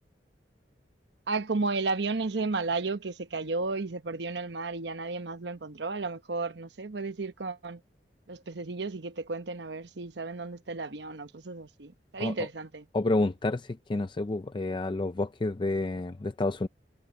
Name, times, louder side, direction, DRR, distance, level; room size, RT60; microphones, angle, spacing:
voice 1, 1.3-7.8 8.3-12.9, right 3 dB, 75° right, 1.0 m, -33 dB
voice 2, 12.9-16.7, left 2 dB, 30° left, 0.4 m, -29 dB
head